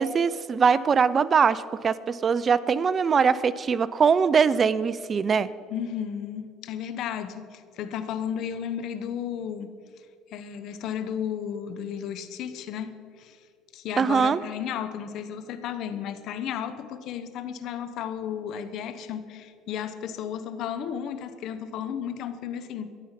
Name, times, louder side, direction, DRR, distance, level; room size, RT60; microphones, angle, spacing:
voice 1, 0.0-5.5 14.0-14.4, right 6 dB, 35° right, 17 dB, 0.4 m, -22 dB
voice 2, 5.7-9.7 10.3-13.4 13.7-22.9, left 8 dB, 60° left, 12 dB, 1.0 m, -33 dB
13.0 x 11.0 x 5.8 m, 2.2 s
supercardioid pair, 105°, 0 cm